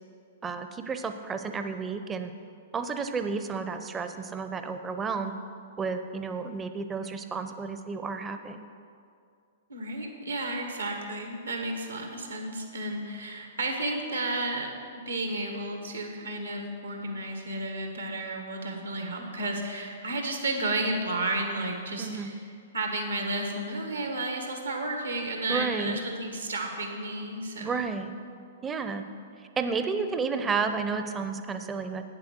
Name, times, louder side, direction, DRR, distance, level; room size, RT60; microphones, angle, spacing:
voice 1, 0.4-2.3 2.7-5.3 5.8-8.6 22.0-22.3 25.5-26.0 27.6-28.1 28.6-29.1 29.6-32.0, right 5 dB, 20° right, 8 dB, 0.6 m, -31 dB
voice 2, 9.7-14.7 15.0-22.4 22.7-27.8, right 2 dB, 80° right, 2 dB, 1.6 m, -32 dB
8.7 x 7.6 x 6.2 m, 2.4 s
figure-of-eight pair, 110°, 0 cm